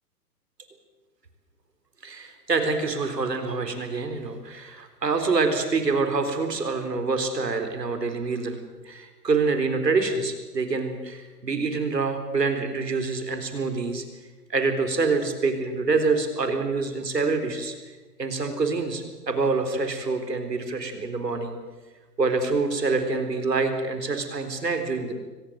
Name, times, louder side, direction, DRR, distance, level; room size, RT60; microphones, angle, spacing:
voice 1, 2.0-8.6 8.9-14.0 14.5-17.7 18.2-21.6 22.2-25.1, right 4 dB, 85° right, 7 dB, 4.1 m, -26 dB
24.0 x 18.5 x 7.7 m, 1.3 s
figure-of-eight pair, 125°, 48 cm